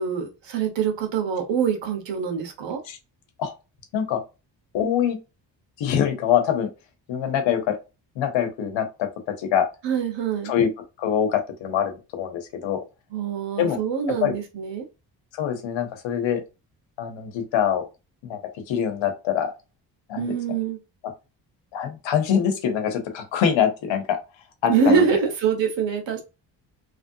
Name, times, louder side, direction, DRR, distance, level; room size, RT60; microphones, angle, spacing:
voice 1, 0.0-2.8 9.8-10.5 13.1-14.8 20.1-20.8 24.7-26.2, right 6 dB, 75° right, 1.3 m, -24 dB
voice 2, 4.7-5.2 5.8-6.7 7.1-7.8 8.2-9.1 9.4-9.6 10.4-10.7 11.0-12.8 13.6-13.8 14.1-14.3 15.3-16.4 17.0-17.9 18.2-18.4 18.7-19.5 20.1-20.4 21.7-24.2 24.6-25.1, left 8 dB, 85° left, 1.0 m, -24 dB
3.1 x 2.5 x 2.7 m
cardioid pair, 75°, 44 cm